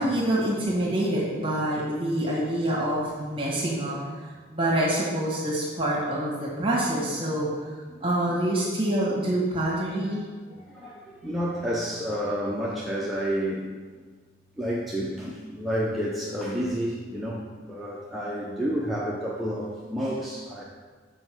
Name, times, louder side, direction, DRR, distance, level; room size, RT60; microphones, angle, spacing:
voice 1, 0.0-7.7 8.0-10.2, right 1 dB, 30° right, -6 dB, 1.7 m, -26 dB
voice 2, 10.1-13.7 14.6-20.6, equal, ahead, -6 dB, 0.7 m, -30 dB
7.7 x 5.0 x 6.2 m, 1.4 s
head